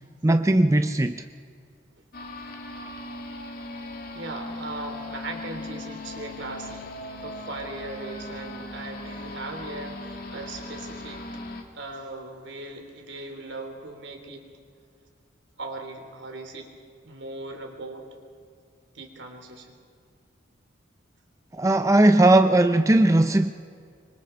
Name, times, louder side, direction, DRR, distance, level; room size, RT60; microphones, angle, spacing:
voice 1, 0.2-1.2 21.5-23.5, right 1 dB, 15° right, 0.4 m, -18 dB
sound 1, 2.1-11.6, left 2 dB, 45° left, 2.1 m, -38 dB
voice 2, 4.1-6.9 7.2-11.2 11.7-14.5 15.6-16.7 17.0-18.1 18.9-19.7, right 2 dB, 70° right, 3.3 m, -38 dB
26.0 x 24.5 x 4.6 m
head